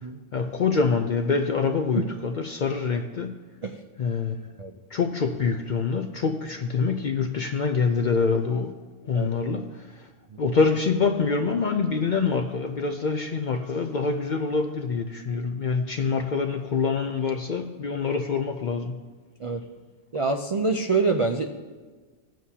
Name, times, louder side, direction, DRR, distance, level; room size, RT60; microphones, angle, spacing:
voice 1, 0.3-3.4 4.0-4.5 4.9-8.8 9.0-10.1 10.4-19.0, left 5 dB, 60° left, 0.5 m, -25 dB
voice 2, 20.1-21.5, right 3 dB, 60° right, 0.3 m, -25 dB
17.0 x 7.6 x 2.8 m
omnidirectional pair, 1.3 m